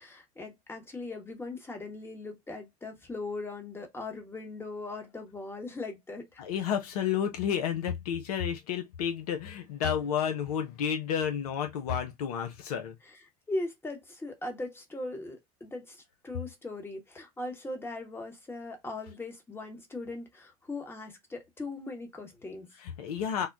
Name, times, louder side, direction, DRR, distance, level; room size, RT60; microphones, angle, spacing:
voice 1, 0.0-6.4 13.1-13.2 13.5-22.7, left 2 dB, 10° left, 1.0 m, -39 dB
voice 2, 6.4-12.9 22.8-23.5, left 8 dB, 70° left, 0.6 m, -31 dB
3.5 x 2.2 x 2.5 m
hypercardioid pair, 80°, 20 cm